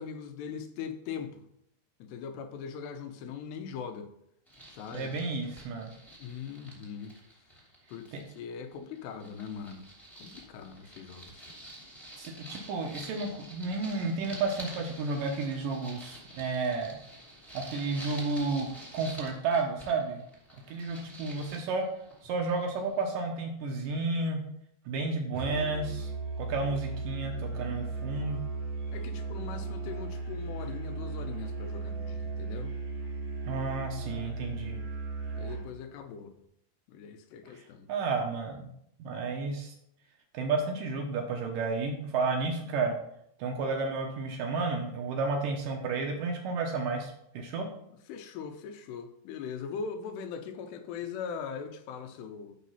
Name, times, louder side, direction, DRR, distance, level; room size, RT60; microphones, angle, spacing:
voice 1, 0.0-1.4 2.0-4.1 4.7-5.1 6.2-7.2 7.9-9.9 10.2-11.5 28.9-32.8 35.3-36.3 36.9-37.9 48.1-52.6, left 6 dB, 90° left, 3.1 m, -40 dB
sound 1, 4.5-8.4 8.7-23.1, right 1 dB, ahead, 1.9 m, -48 dB
voice 2, 4.9-5.9 8.1-8.2 12.2-17.0 17.5-18.7 18.9-20.2 20.7-21.8 22.2-24.4 24.9-26.1 26.4-28.4 33.5-34.8 37.5-38.7 39.0-39.7 40.3-43.0 43.4-47.7, right 3 dB, 70° right, 2.3 m, -32 dB
Musical instrument, 25.3-35.7, right 3 dB, 55° right, 3.4 m, -36 dB
11.5 x 4.2 x 5.7 m
omnidirectional pair, 4.7 m